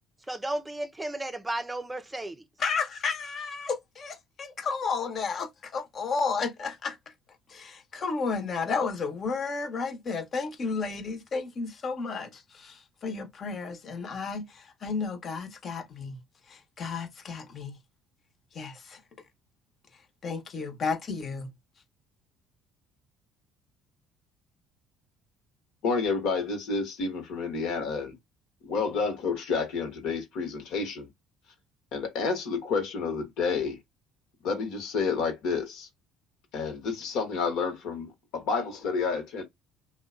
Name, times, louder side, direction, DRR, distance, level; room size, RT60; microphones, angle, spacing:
voice 1, 0.3-2.4, right 1 dB, 15° right, 0.4 m, -33 dB
voice 2, 2.6-7.0 7.5-16.2 16.5-17.8 18.5-19.0 20.2-21.5, left 4 dB, 45° left, 0.9 m, -32 dB
voice 3, 25.8-28.2 28.6-31.1 31.9-33.8 34.4-35.9 36.5-39.4, left 4 dB, 70° left, 1.0 m, -30 dB
2.7 x 2.2 x 2.3 m
hypercardioid pair, 65°, 0 cm